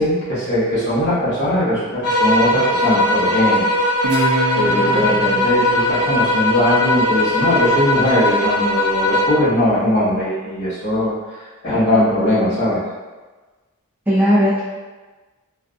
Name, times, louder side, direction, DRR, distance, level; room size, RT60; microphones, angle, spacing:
voice 1, 0.0-3.6 4.1-12.8, left 1 dB, 50° left, -10 dB, 1.0 m, -20 dB
sound 1, 2.0-9.5, left 1 dB, 90° left, 0.4 m, -19 dB
Guitar, 4.0-7.3, right 1 dB, 70° right, 0.5 m, -26 dB
voice 2, 4.7-5.0 14.1-14.6, equal, 10° right, -10 dB, 0.4 m, -17 dB
2.6 x 2.2 x 2.4 m, 1.3 s
head